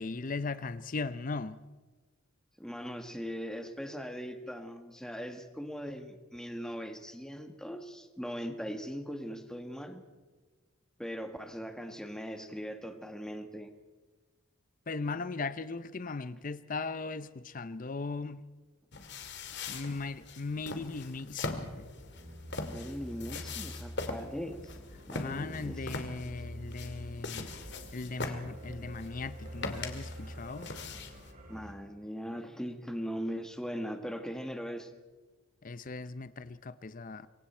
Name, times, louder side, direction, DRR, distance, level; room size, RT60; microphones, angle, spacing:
voice 1, 0.0-1.6 14.9-18.4 19.7-21.8 25.2-27.5 27.9-30.7 35.6-37.3, left 3 dB, 40° left, 0.6 m, -38 dB
voice 2, 2.6-10.0 11.0-13.7 22.7-24.7 25.1-25.8 28.3-28.4 31.5-34.9, equal, 5° left, 1.5 m, -40 dB
sound 1, 18.9-31.3, left 3 dB, 55° left, 2.2 m, -42 dB
sound 2, 21.7-31.7, equal, 35° right, 3.1 m, -46 dB
26.5 x 23.5 x 4.4 m
head